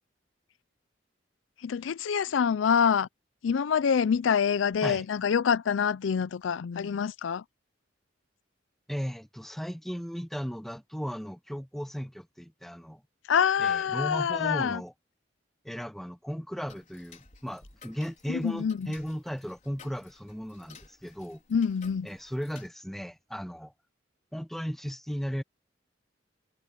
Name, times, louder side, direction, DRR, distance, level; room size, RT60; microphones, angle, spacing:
voice 1, 1.6-3.1 3.4-7.4 13.3-14.8 18.3-18.9 21.5-22.1, left 7 dB, 85° left, 0.4 m, -26 dB
voice 2, 8.9-13.0 13.6-14.9 15.6-21.4 22.0-23.7 24.3-25.4, equal, ahead, 0.7 m, -36 dB
Tick-tock, 16.7-22.7, left 5 dB, 45° left, 4.7 m, -55 dB
head